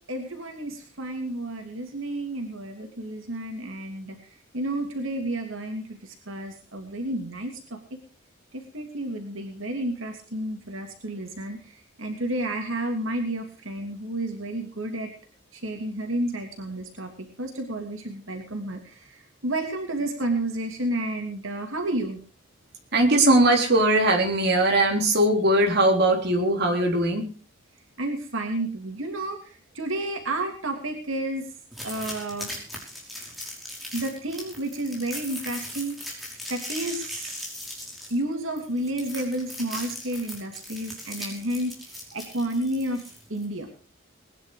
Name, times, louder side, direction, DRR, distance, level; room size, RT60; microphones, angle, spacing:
voice 1, 0.1-4.2 4.5-7.8 8.7-11.6 12.0-15.1 15.5-17.1 17.4-22.2 28.0-29.4 29.7-31.5 31.8-32.5 33.9-36.0 36.5-37.5 38.1-41.7 42.1-43.7, right 1 dB, 85° right, 4 dB, 3.0 m, -31 dB
voice 2, 22.9-27.3, right 1 dB, 55° right, 2 dB, 3.7 m, -20 dB
sound 1, 31.7-43.5, left 1 dB, ahead, 5.5 m, -39 dB
21.0 x 10.5 x 4.9 m, 0.39 s
head